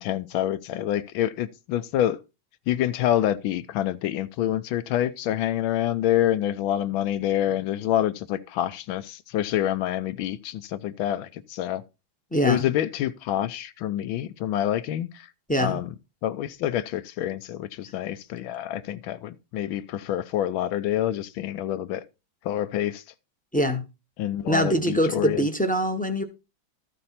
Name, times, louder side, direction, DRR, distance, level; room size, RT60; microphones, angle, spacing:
voice 1, 0.0-2.2 2.7-11.8 12.4-15.3 15.6-15.9 16.2-22.0 22.4-23.0 24.2-25.5, left 12 dB, 85° left, 1.5 m, -27 dB
voice 2, 12.3-12.7 15.5-15.8 23.5-23.8 24.5-26.2, equal, 10° left, 0.4 m, -23 dB
13.5 x 5.4 x 4.2 m
omnidirectional pair, 2.2 m